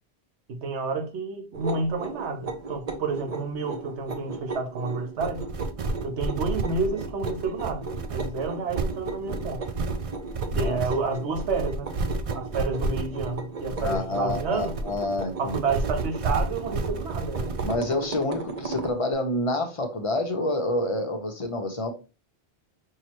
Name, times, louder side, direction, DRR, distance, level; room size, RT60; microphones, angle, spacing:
voice 1, 0.5-5.5 6.0-9.6 10.5-11.9 12.3-14.8 15.4-17.5, right 4 dB, 90° right, 1.1 m, -30 dB
sound 1, 1.5-19.0, right 3 dB, 40° right, 0.7 m, -37 dB
sound 2, 5.2-17.8, right 3 dB, 60° right, 0.3 m, -31 dB
voice 2, 13.8-15.6 17.6-21.9, left 2 dB, 35° left, 0.6 m, -28 dB
5.6 x 2.8 x 3.0 m
omnidirectional pair, 1.1 m